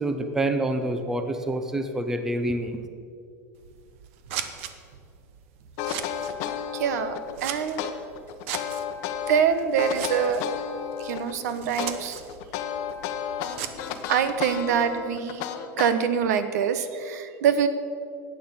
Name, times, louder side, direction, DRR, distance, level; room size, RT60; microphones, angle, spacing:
voice 1, 0.0-2.8, right 1 dB, 5° right, 7 dB, 0.6 m, -27 dB
Scissors, 3.5-15.0, right 9 dB, 55° right, 0.9 m, -40 dB
sound 1, 5.8-7.3 7.8-9.4 9.8-11.3 11.8-16.3, left 9 dB, 45° left, 1.0 m, -32 dB
voice 2, 6.4-7.9 9.3-10.4 11.0-12.2 14.1-15.4 15.8-17.7, right 7 dB, 85° right, 11 dB, 1.1 m, -25 dB
13.0 x 9.3 x 7.2 m, 2.4 s
supercardioid pair, 180°, 9 cm